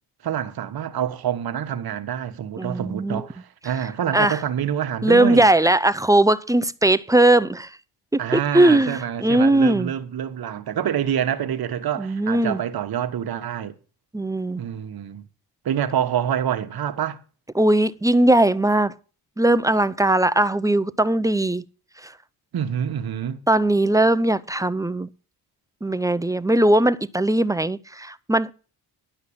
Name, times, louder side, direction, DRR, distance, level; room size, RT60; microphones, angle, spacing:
voice 1, 0.2-5.5 8.2-13.7 14.6-15.2 15.6-17.2 22.5-23.4, right 9 dB, 60° right, 1.2 m, -26 dB
voice 2, 2.6-3.2 4.1-4.4 5.0-7.7 8.1-9.9 12.0-12.6 14.1-14.6 17.6-18.9 19.4-21.6 22.0-22.1 23.5-25.1 25.8-28.5, right 1 dB, 10° right, 0.5 m, -19 dB
11.5 x 5.8 x 8.5 m
cardioid pair, 85°, 41 cm